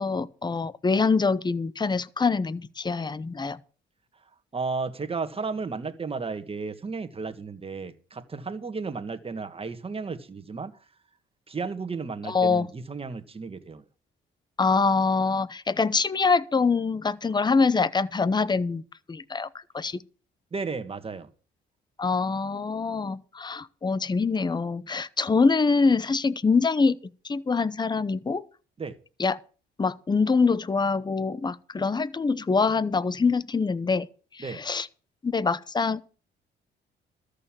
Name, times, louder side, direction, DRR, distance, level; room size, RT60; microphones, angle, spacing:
voice 1, 0.0-3.6 12.3-12.7 14.6-18.8 19.1-19.5 19.7-20.0 22.0-27.0 27.2-28.4 29.2-29.4 29.8-34.1 34.3-34.9 35.2-36.0, left 4 dB, 20° left, 0.8 m, -24 dB
voice 2, 4.5-10.8 11.5-13.8 20.5-21.3 28.8-29.0 34.4-34.6, right 4 dB, 30° right, 1.7 m, -33 dB
13.5 x 6.7 x 7.4 m
cardioid pair, 90°, 20 cm